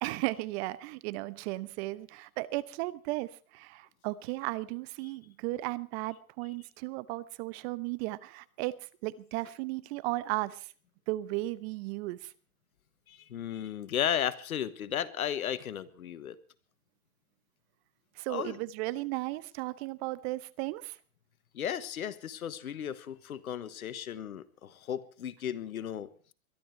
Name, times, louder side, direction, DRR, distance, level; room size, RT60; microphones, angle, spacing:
voice 1, 0.0-8.7 9.0-10.7 11.1-12.3 18.1-21.0, right 19 dB, 50° right, 16 dB, 1.0 m, -35 dB
voice 2, 13.1-16.4 18.3-18.6 21.5-26.1, left 9 dB, 85° left, 15 dB, 1.4 m, -35 dB
22.0 x 12.5 x 4.6 m, 0.41 s
hypercardioid pair, 110°, 42 cm